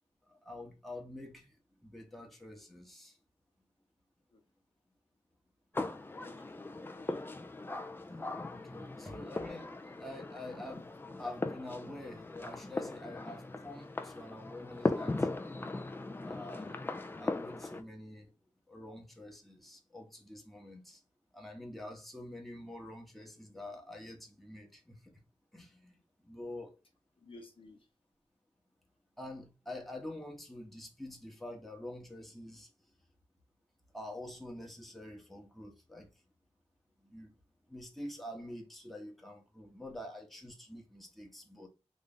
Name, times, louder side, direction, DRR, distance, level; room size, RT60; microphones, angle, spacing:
voice 1, 0.3-1.5 1.8-3.1 8.4-10.9 11.2-15.3 16.2-16.8 17.2-18.3 18.7-21.0 21.3-25.2 25.5-26.0 26.2-26.8 29.2-32.7 33.9-36.1 37.1-37.3 37.7-41.7, left 1 dB, ahead, 1.0 m, -47 dB
sound 1, 5.7-17.8, left 2 dB, 20° left, 0.4 m, -39 dB
voice 2, 6.1-7.6 27.2-27.9, left 2 dB, 50° left, 0.9 m, -56 dB
3.2 x 2.5 x 3.7 m
wide cardioid pair, 90°, 12 cm